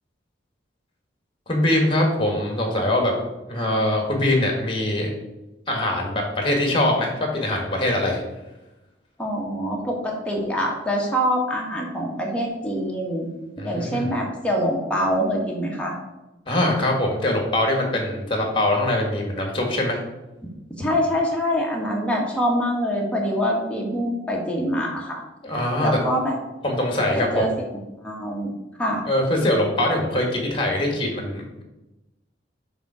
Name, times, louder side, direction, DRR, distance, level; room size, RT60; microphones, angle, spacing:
voice 1, 1.5-3.1 3.5-5.1 5.7-8.2 13.6-14.1 16.5-20.0 25.4-26.0 26.6-27.5 29.0-31.6, left 1 dB, 30° left, 2 dB, 1.7 m, -22 dB
voice 2, 9.2-13.3 13.6-15.9 20.8-25.2 25.8-26.4 27.1-27.5 28.0-28.5 28.8-29.0, equal, 5° left, -2 dB, 1.4 m, -24 dB
7.2 x 3.7 x 6.1 m, 1.0 s
head